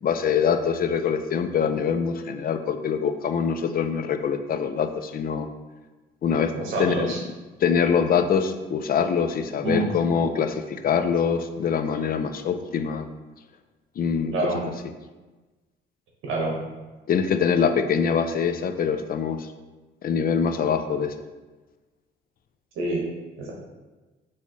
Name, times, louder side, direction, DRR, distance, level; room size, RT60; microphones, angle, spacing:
voice 1, 0.0-5.5 6.2-6.5 6.8-7.2 7.6-13.1 14.0-14.7 17.1-19.5 20.0-21.1, left 6 dB, 50° left, 9 dB, 0.4 m, -24 dB
voice 2, 6.5-7.2 9.6-9.8 14.3-14.6 16.2-16.6 22.8-23.0 23.4-23.5, right 2 dB, 90° right, -2 dB, 1.2 m, -26 dB
6.3 x 2.8 x 3.0 m, 1.2 s
cardioid pair, 90°, 20 cm